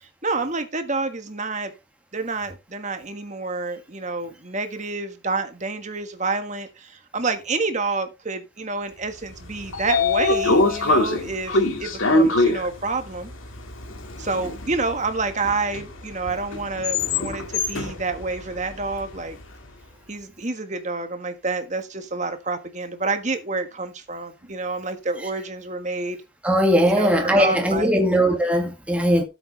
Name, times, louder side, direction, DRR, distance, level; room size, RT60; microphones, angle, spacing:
voice 1, 0.2-1.7 2.1-13.3 14.2-19.4 20.1-26.2 26.9-28.0, right 3 dB, 35° right, 1.5 m, -28 dB
Train / Sliding door, 9.3-19.4, left 2 dB, 80° left, 2.1 m, -24 dB
voice 2, 26.4-29.2, equal, 5° right, 2.0 m, -19 dB
12.5 x 7.8 x 3.3 m
head